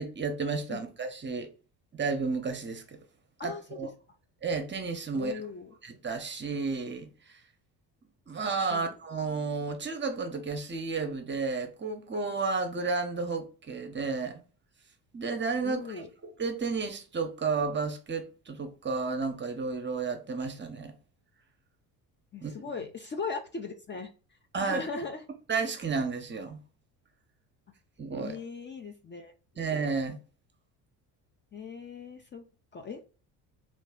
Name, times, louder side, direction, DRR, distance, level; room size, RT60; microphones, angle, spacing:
voice 1, 0.0-1.5 1.9-3.0 3.4-3.9 4.4-5.4 5.8-7.4 8.3-14.4 15.1-20.9 22.4-22.5 24.5-24.8 25.5-26.6 28.0-28.4 29.6-30.2, right 4 dB, 25° right, 0.7 m, -32 dB
voice 2, 3.4-3.8 5.1-5.7 8.7-8.9 15.6-16.1 22.3-24.1 24.6-25.2 28.2-29.3 31.5-32.5 32.7-33.0, left 4 dB, 25° left, 0.5 m, -38 dB
3.1 x 2.6 x 3.6 m
supercardioid pair, 80°, 43 cm